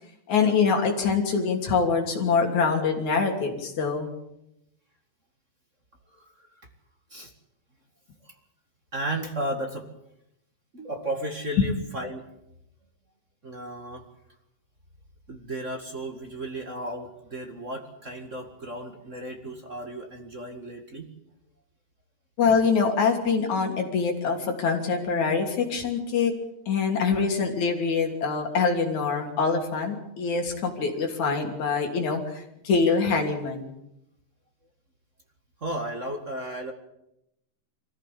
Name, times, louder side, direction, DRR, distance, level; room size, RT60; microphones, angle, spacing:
voice 1, 0.3-4.1 11.6-11.7 22.4-26.4 26.7-33.7, left 5 dB, 50° left, 2 dB, 4.2 m, -24 dB
voice 2, 6.1-6.5 7.1-7.3 8.2-8.3 8.9-9.9 10.7-12.3 13.4-14.1 15.3-21.1 35.6-36.7, right 1 dB, 30° right, 4 dB, 1.4 m, -34 dB
24.0 x 15.5 x 8.6 m, 0.82 s
omnidirectional pair, 4.5 m